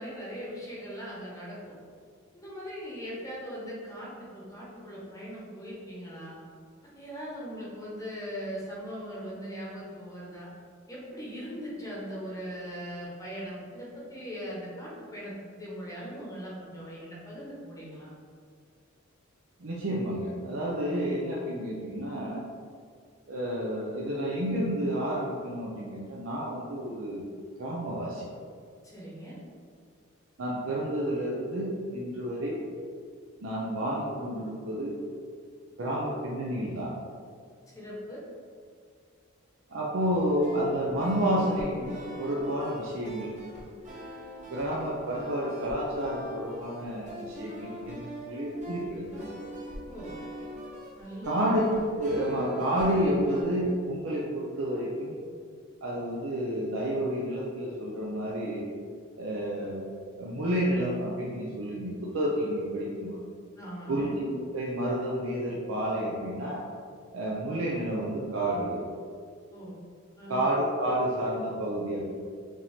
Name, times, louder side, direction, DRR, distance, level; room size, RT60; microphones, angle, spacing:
voice 1, 0.0-1.7 2.3-6.4 6.9-10.5 10.9-18.1 28.8-29.4 37.7-38.2 49.9-50.1 50.9-51.5 63.6-64.1 69.5-69.7 70.2-70.5, equal, 15° left, -6 dB, 0.9 m, -40 dB
voice 2, 19.6-22.4 23.3-27.2 27.6-28.3 30.4-32.6 33.4-34.9 35.8-36.9 39.7-43.3 44.5-49.0 51.2-51.6 51.9-55.2 55.8-58.7 59.2-59.8 60.2-63.2 63.9-66.6 67.1-68.8 70.3-72.1, right 1 dB, 70° right, -5 dB, 0.6 m, -30 dB
sound 1, 40.0-53.4, equal, 35° right, 1.1 m, -42 dB
5.1 x 2.8 x 3.5 m, 2.1 s
head